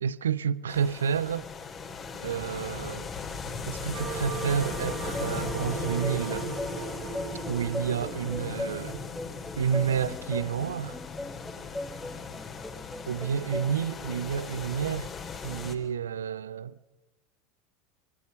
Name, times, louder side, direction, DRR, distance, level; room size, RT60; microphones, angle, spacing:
voice 1, 0.0-1.5 2.2-3.1 3.7-6.6 7.5-9.0 9.6-11.0 13.1-15.1 15.4-16.8, right 7 dB, 75° right, 0.7 m, -30 dB
sound 1, 0.7-15.7, left 5 dB, 30° left, 3.9 m, -38 dB
sound 2, 3.9-9.3, right 6 dB, 40° right, 3.3 m, -38 dB
sound 3, 4.8-13.7, left 1 dB, 5° left, 1.4 m, -39 dB
26.0 x 21.5 x 6.9 m
figure-of-eight pair, 80°, 0 cm